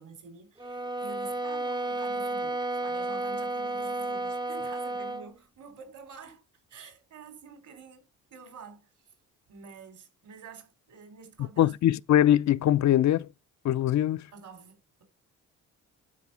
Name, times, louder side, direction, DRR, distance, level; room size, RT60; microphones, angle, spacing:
voice 1, 0.0-6.4 6.7-8.9 9.5-12.0 14.3-15.0, right 5 dB, 65° right, 4.2 m, -48 dB
sound 1, 0.6-5.3, right 2 dB, 15° right, 0.6 m, -32 dB
voice 2, 11.6-13.3 13.6-14.3, left 12 dB, 60° left, 0.6 m, -22 dB
12.5 x 4.7 x 6.1 m
cardioid pair, 75°, 32 cm